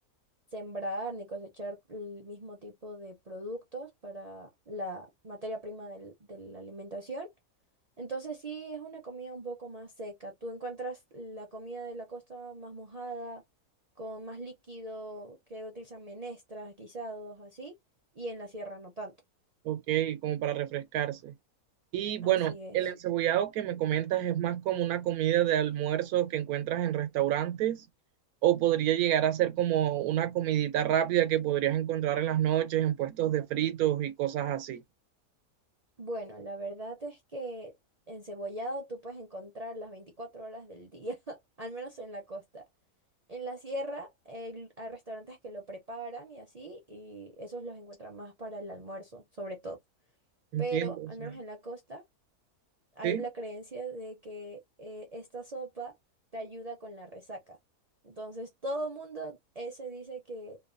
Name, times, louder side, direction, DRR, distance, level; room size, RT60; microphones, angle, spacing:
voice 1, 0.5-7.3 8.0-13.4 14.0-17.7 18.1-19.1 22.2-22.8 36.0-37.7 38.1-42.6 43.3-49.8 50.6-52.0 53.0-55.9 56.3-57.6 58.0-60.6, right 1 dB, 50° right, 0.4 m, -40 dB
voice 2, 19.6-21.3 21.9-27.8 28.4-34.8 50.5-50.9 53.0-53.2, right 12 dB, 90° right, 1.1 m, -28 dB
2.9 x 2.3 x 2.5 m
omnidirectional pair, 1.5 m